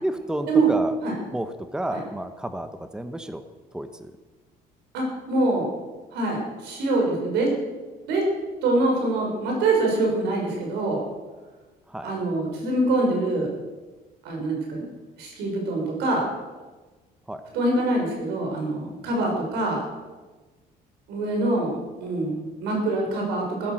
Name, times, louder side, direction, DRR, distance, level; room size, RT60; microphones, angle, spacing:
voice 1, 0.0-1.0 1.3-3.4 3.7-4.1 11.9-12.1 17.3-17.4, right 1 dB, 5° right, 9 dB, 1.0 m, -31 dB
voice 2, 4.9-5.7 6.1-7.5 8.1-8.2 8.6-11.0 12.0-13.5 14.2-14.9 15.2-16.3 17.5-19.9 21.1-23.7, right 2 dB, 90° right, 0 dB, 5.9 m, -24 dB
15.5 x 13.0 x 6.3 m, 1.3 s
cardioid pair, 110°, 17 cm